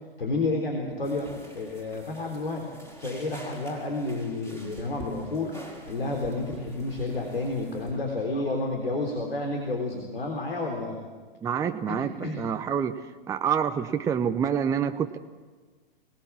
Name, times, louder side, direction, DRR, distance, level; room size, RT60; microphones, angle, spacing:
voice 1, 0.2-2.6 3.0-5.5 5.9-11.0 11.9-12.4, left 2 dB, 75° left, 2 dB, 3.7 m, -30 dB
sound 1, 1.0-8.0, equal, 10° left, 4.7 m, -47 dB
voice 2, 11.4-15.2, right 7 dB, 10° right, 7 dB, 0.6 m, -27 dB
24.0 x 19.0 x 7.4 m, 1.4 s
figure-of-eight pair, 105°, 30 cm